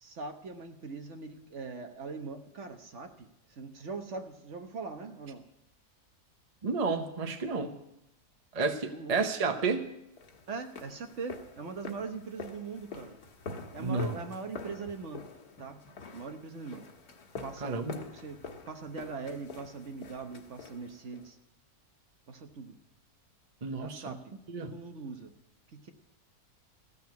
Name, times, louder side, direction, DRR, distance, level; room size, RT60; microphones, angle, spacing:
voice 1, 0.0-5.4 8.9-9.2 10.5-13.2 13.7-15.2 15.6-15.8 16.1-16.8 17.4-17.8 18.1-18.4 18.7-21.4 22.3-22.8 23.8-25.3 25.7-25.9, right 4 dB, 55° right, 6 dB, 1.3 m, -41 dB
voice 2, 6.6-7.7 8.5-9.9 13.8-14.1 17.6-18.0 23.6-24.2 24.5-24.7, right 4 dB, 30° right, 6 dB, 0.8 m, -31 dB
sound 1, 10.2-21.3, left 4 dB, 80° left, 1.8 m, -46 dB
15.0 x 6.9 x 9.4 m, 0.84 s
omnidirectional pair, 1.6 m